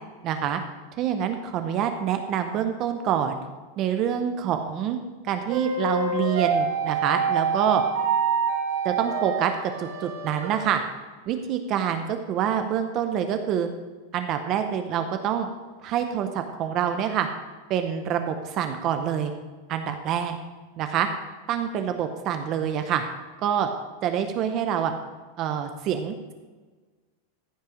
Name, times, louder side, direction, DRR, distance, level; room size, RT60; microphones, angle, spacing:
voice 1, 0.2-0.6 1.0-3.4 3.8-5.0 5.2-7.8 8.8-10.8 11.3-13.7 14.1-15.5 15.8-17.3 17.7-19.3 19.7-20.4 20.8-21.1 21.5-23.0 23.4-23.7 24.0-24.9 25.4-26.3, right 9 dB, 30° right, 7 dB, 0.6 m, -26 dB
sound 1, 5.5-10.6, right 5 dB, 75° right, 3.7 m, -26 dB
14.5 x 5.6 x 5.1 m, 1.4 s
supercardioid pair, 170°, 0 cm